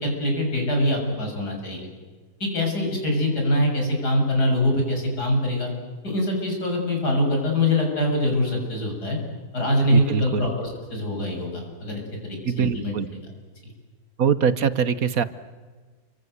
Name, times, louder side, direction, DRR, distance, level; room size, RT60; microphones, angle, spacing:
voice 1, 0.0-1.9 2.4-5.7 6.0-9.2 9.5-13.0, left 1 dB, 85° left, 1 dB, 7.8 m, -24 dB
voice 2, 9.9-10.5 12.5-13.1 14.2-15.2, right 7 dB, 65° right, 14 dB, 1.5 m, -23 dB
29.0 x 25.0 x 8.1 m, 1.4 s
omnidirectional pair, 1.7 m